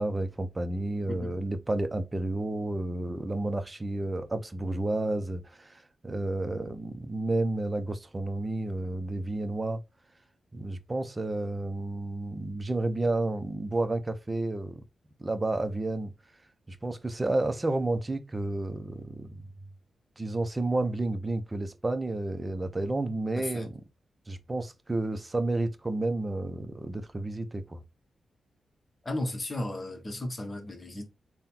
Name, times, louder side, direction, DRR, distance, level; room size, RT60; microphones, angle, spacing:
voice 1, 0.0-9.8 10.5-14.8 15.2-16.1 16.7-19.4 20.2-23.8 24.3-27.8, right 2 dB, 25° right, 0.7 m, -31 dB
voice 2, 29.0-31.1, left 1 dB, 35° left, 1.2 m, -34 dB
3.7 x 2.3 x 4.2 m
cardioid pair, 60°, 0 cm